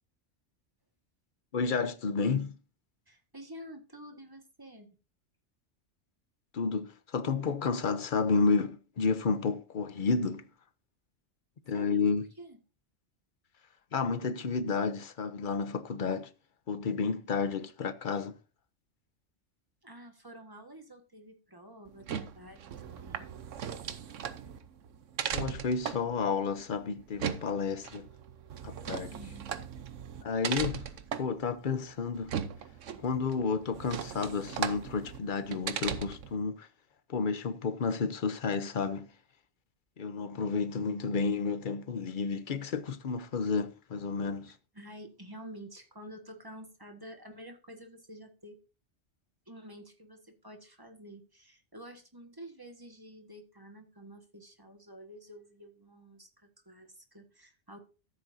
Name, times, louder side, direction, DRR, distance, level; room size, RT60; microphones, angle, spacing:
voice 1, 1.5-2.6 6.5-10.5 11.7-12.2 13.9-16.3 16.7-18.3 25.3-28.1 28.6-29.1 30.2-30.9 31.2-32.3 33.0-36.7 37.1-39.1 40.0-44.5, left 5 dB, 45° left, 0.9 m, -31 dB
voice 2, 3.1-4.9 11.7-12.0 12.4-12.6 19.8-23.3 29.1-29.5 44.7-48.6 49.5-57.8, right 1 dB, 20° right, 1.5 m, -49 dB
sound 1, 21.9-36.4, right 8 dB, 85° right, 1.2 m, -38 dB
14.0 x 7.7 x 2.7 m
omnidirectional pair, 1.2 m